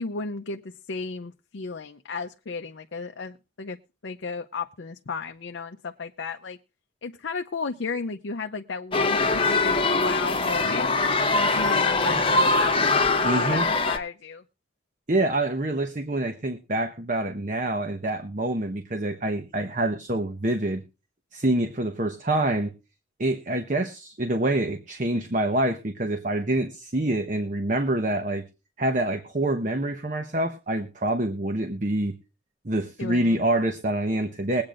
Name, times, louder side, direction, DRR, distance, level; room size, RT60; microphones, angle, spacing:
voice 1, 0.0-3.8 4.0-6.6 7.0-12.9 13.2-14.4 33.0-33.4, left 4 dB, 70° left, 0.6 m, -34 dB
sound 1, 8.9-14.0, left 3 dB, 25° left, 1.0 m, -22 dB
voice 2, 13.2-13.7 15.1-20.8 21.3-22.7 23.2-28.4 28.8-32.1 32.6-34.6, right 1 dB, 40° right, 1.0 m, -26 dB
21.5 x 8.7 x 2.5 m
head